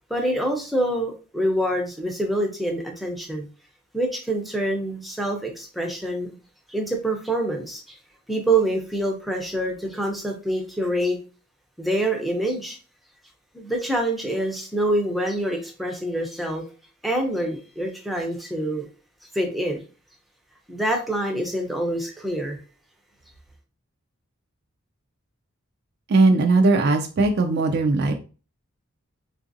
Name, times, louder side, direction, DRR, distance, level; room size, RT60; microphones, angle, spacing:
voice 1, 0.1-3.5 3.9-6.3 6.7-8.0 8.3-11.2 11.8-12.8 13.5-16.6 17.0-18.8 19.3-19.8 20.7-22.6, right 1 dB, ahead, 0.5 m, -26 dB
voice 2, 26.1-28.1, right 3 dB, 50° right, 0.3 m, -19 dB
3.7 x 2.4 x 2.6 m
head